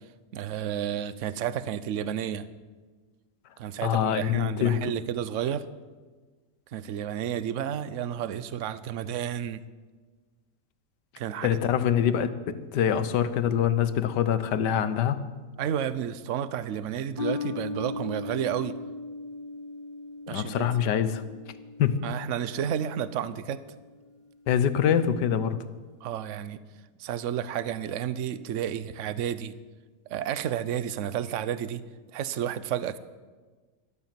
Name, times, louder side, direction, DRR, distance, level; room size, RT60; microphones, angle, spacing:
voice 1, 0.3-2.5 3.6-5.7 6.7-9.6 11.2-11.5 15.6-18.7 20.3-20.7 22.0-23.6 26.0-26.6 27.0-29.5 30.1-31.8 32.1-33.0, right 9 dB, 60° right, 15 dB, 0.9 m, -31 dB
voice 2, 3.8-4.9 11.4-12.3 12.7-15.2 20.3-21.2 21.8-22.0 24.5-25.6, left 9 dB, 85° left, 12 dB, 1.5 m, -24 dB
sound 1, 17.2-23.9, left 3 dB, 20° right, 3.1 m, -38 dB
13.5 x 12.5 x 7.5 m, 1.4 s
omnidirectional pair, 1.8 m